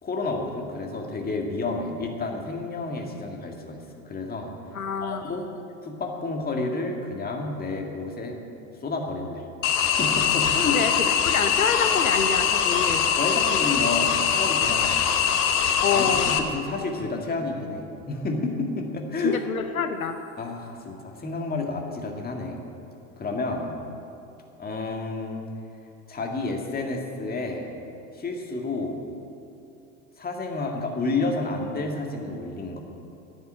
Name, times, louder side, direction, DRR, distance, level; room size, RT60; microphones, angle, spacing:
voice 1, 0.0-4.5 5.0-5.5 5.8-8.4 8.8-9.5 9.8-10.8 13.0-15.0 15.9-19.4 20.4-22.6 23.2-23.7 24.6-25.4 26.1-27.7 28.1-29.0 30.2-32.8, left 3 dB, 20° left, 2 dB, 1.9 m, -30 dB
voice 2, 4.7-5.3 10.7-10.9 11.2-13.1 15.8-16.4 19.2-20.2, left 6 dB, 90° left, 8 dB, 0.7 m, -27 dB
sound 1, 9.6-16.4, left 7 dB, 60° left, 1.1 m, -22 dB
9.9 x 7.3 x 9.0 m, 2.7 s
figure-of-eight pair, 75°, 41 cm